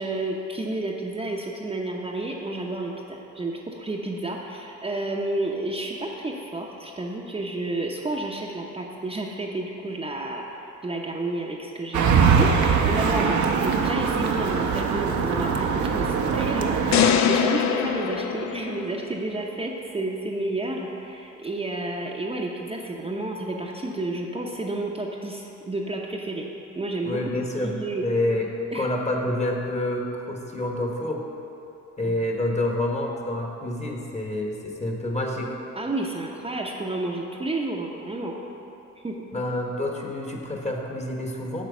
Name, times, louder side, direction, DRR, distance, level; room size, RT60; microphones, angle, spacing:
voice 1, 0.0-26.5 26.8-27.3 27.6-28.0 28.7-28.9 32.0-32.1 35.7-38.3 39.0-39.2, right 2 dB, 20° right, -2 dB, 0.7 m, -31 dB
sound 1, 11.9-17.1, right 5 dB, 70° right, 0.8 m, -22 dB
sound 2, 16.9-19.2, left 7 dB, 65° left, 0.5 m, -23 dB
voice 2, 27.0-27.8 28.0-28.5 28.7-31.3 32.0-35.5 39.3-41.6, left 1 dB, 20° left, 1 dB, 1.1 m, -28 dB
7.5 x 4.6 x 7.1 m, 2.9 s
cardioid pair, 90°, 30 cm